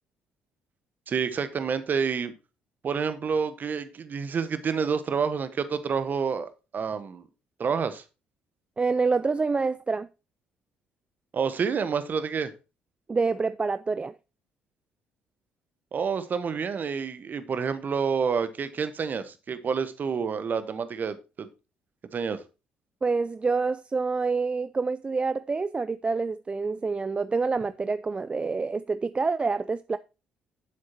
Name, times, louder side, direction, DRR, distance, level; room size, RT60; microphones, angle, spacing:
voice 1, 1.1-2.3 2.8-7.2 7.6-8.0 11.3-12.5 15.9-21.5 22.1-22.4, right 6 dB, 45° right, 1.2 m, -28 dB
voice 2, 8.8-10.1 13.1-14.1 23.0-30.0, right 4 dB, 25° right, 0.4 m, -27 dB
9.8 x 7.7 x 2.9 m
hypercardioid pair, 50°, 4 cm